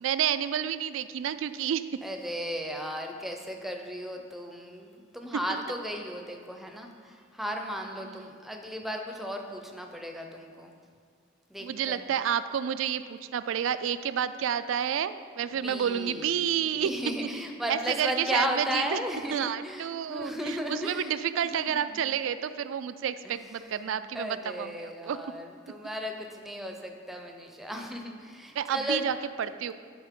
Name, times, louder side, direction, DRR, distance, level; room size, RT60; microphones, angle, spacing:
voice 1, 0.0-1.8 5.5-5.6 8.0-8.2 11.6-16.9 17.7-19.0 19.3-25.2 28.6-29.7, right 9 dB, 70° right, 13 dB, 0.3 m, -30 dB
voice 2, 2.0-10.7 11.5-12.1 15.5-22.0 23.2-29.1, equal, ahead, 3 dB, 0.6 m, -35 dB
11.0 x 5.1 x 3.7 m, 2.1 s
head